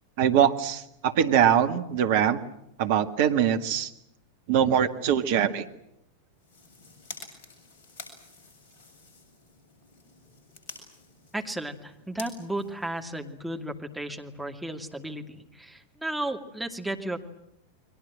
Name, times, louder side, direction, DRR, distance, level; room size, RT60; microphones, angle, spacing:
voice 1, 0.2-2.4 2.8-3.9 4.5-5.7, right 9 dB, 50° right, 9 dB, 1.8 m, -23 dB
sound 1, 6.3-13.6, left 3 dB, 50° left, 7.3 m, -48 dB
voice 2, 11.3-17.2, right 1 dB, 5° right, 3 dB, 2.5 m, -34 dB
30.0 x 23.0 x 7.7 m, 0.78 s
figure-of-eight pair, 90°, 0 cm